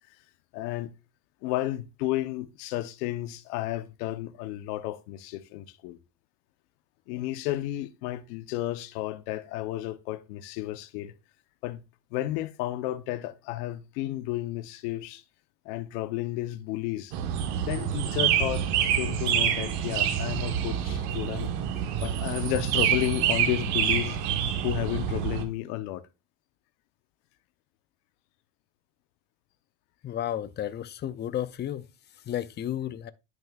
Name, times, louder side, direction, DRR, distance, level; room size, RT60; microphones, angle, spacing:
voice 1, 0.5-0.9 1.4-6.0 7.1-11.1 11.6-11.8 12.1-15.2 15.6-17.1 17.6-21.5 22.0-24.2 24.6-26.1, left 15 dB, 85° left, 0.9 m, -32 dB
sound 1, 17.1-25.4, right 9 dB, 85° right, 1.4 m, -27 dB
voice 2, 30.0-31.9 32.3-33.1, left 11 dB, 25° left, 0.4 m, -32 dB
10.5 x 6.3 x 2.4 m
supercardioid pair, 115°, 45 cm